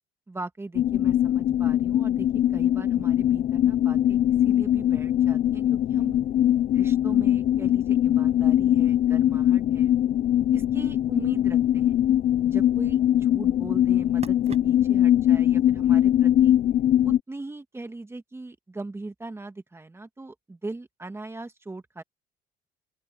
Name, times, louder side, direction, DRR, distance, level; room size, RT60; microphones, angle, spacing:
voice 1, 0.3-2.3 2.5-6.1 6.7-9.9 10.5-12.0 12.5-16.6 17.0-22.0, right 2 dB, 15° right, 2.1 m, -40 dB
sound 1, 0.7-17.2, left 11 dB, 60° left, 1.1 m, -22 dB
sound 2, 2.2-15.1, right 6 dB, 40° right, 7.9 m, -51 dB
open air
cardioid pair, 110°, 17 cm